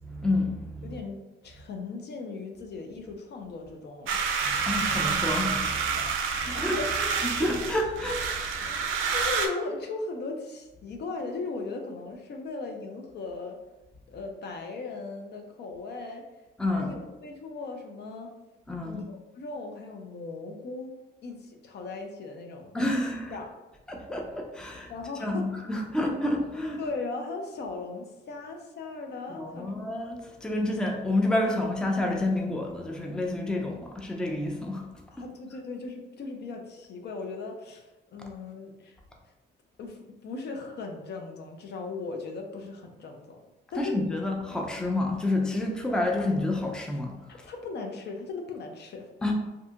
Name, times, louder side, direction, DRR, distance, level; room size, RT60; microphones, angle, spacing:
voice 1, 0.0-1.0 4.4-6.1 6.4-8.8 16.6-16.9 18.7-19.0 22.7-23.4 23.9-24.9 25.2-26.8 29.3-34.9 43.8-47.5 49.2-49.3, left 1 dB, 5° left, 1 dB, 0.4 m, -29 dB
voice 2, 0.8-4.3 6.5-6.9 7.4-7.7 8.6-13.6 14.1-16.2 16.7-18.3 18.8-21.0 21.2-22.7 23.3-23.6 24.9-25.4 26.8-29.7 35.1-39.0 39.8-43.4 43.7-44.0 47.3-49.1, left 3 dB, 55° left, 3 dB, 0.5 m, -38 dB
sound 1, 4.1-9.5, right 5 dB, 85° right, 0.4 m, -28 dB
2.6 x 2.6 x 2.3 m, 1.1 s
cardioid pair, 90°, 20 cm